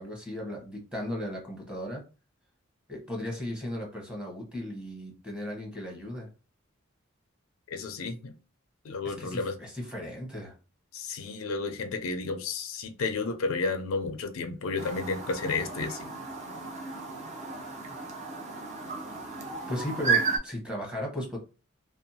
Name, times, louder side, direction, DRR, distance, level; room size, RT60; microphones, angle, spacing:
voice 1, 0.0-2.0 2.9-6.3 9.0-10.5 19.7-21.4, left 1 dB, 5° right, 0.9 m, -36 dB
voice 2, 7.7-8.4 8.8-9.5 10.9-16.1, left 4 dB, 85° left, 0.4 m, -32 dB
Chirp tweet, 14.8-20.4, right 5 dB, 35° right, 0.5 m, -33 dB
2.6 x 2.1 x 2.7 m
head